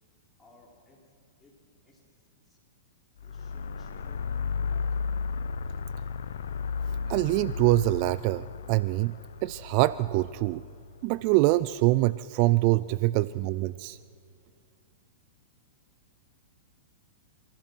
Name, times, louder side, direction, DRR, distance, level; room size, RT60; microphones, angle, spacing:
voice 1, 0.4-1.0 1.4-1.6 1.8-2.1 2.4-2.6 3.2-4.9, left 2 dB, 5° left, -4 dB, 5.8 m, -59 dB
sound 1, 3.2-11.5, left 5 dB, 80° left, 0.9 m, -34 dB
voice 2, 7.1-9.1 9.4-10.6 11.0-14.0, right 19 dB, 45° right, 17 dB, 0.4 m, -24 dB
28.5 x 15.0 x 6.3 m, 2.4 s
hypercardioid pair, 130°, 0 cm